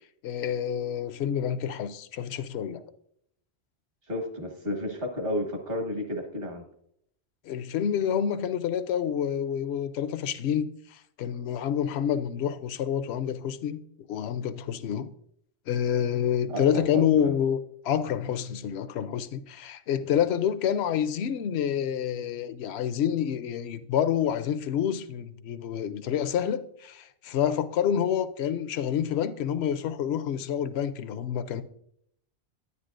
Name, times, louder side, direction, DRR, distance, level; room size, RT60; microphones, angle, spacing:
voice 1, 0.2-2.8 7.5-13.8 14.1-15.1 15.7-31.6, left 9 dB, 70° left, 0.8 m, -28 dB
voice 2, 4.1-6.6 16.5-17.4, left 1 dB, 60° right, 1.6 m, -32 dB
9.6 x 9.4 x 2.5 m
omnidirectional pair, 1.1 m